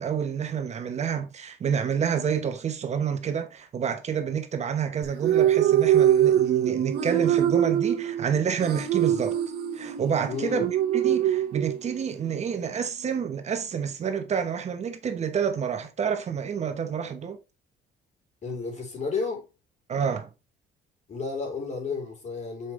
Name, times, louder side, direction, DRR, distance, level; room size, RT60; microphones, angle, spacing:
voice 1, 0.0-9.4 9.7-17.4 19.9-20.3, right 7 dB, 40° right, 1.1 m, -28 dB
sound 1, 5.0-12.1, right 11 dB, 70° right, 1.2 m, -23 dB
voice 2, 10.3-10.6 18.4-19.5 21.1-22.7, left 4 dB, 45° left, 4.0 m, -32 dB
7.0 x 5.3 x 3.3 m
cardioid pair, 110°, 17 cm